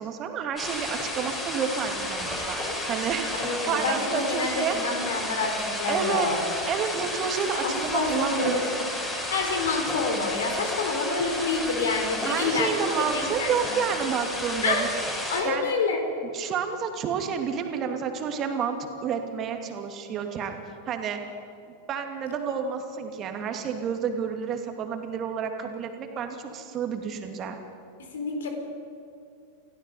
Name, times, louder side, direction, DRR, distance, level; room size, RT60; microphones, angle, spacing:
voice 1, 0.0-2.6 2.9-4.8 5.9-6.3 6.7-8.7 12.3-14.9 15.2-15.7 16.2-20.6 20.9-21.2 21.9-27.6, right 7 dB, 30° right, 5 dB, 2.5 m, -30 dB
sound 1, 0.6-15.4, left 1 dB, 15° left, 5.9 m, -32 dB
voice 2, 3.3-6.4 7.6-8.9 9.3-12.7 13.1-13.6 14.6-14.8 15.3-16.0 28.1-28.5, left 4 dB, 60° left, 4 dB, 4.0 m, -27 dB
28.5 x 17.0 x 5.6 m, 2.5 s
figure-of-eight pair, 90°, 0 cm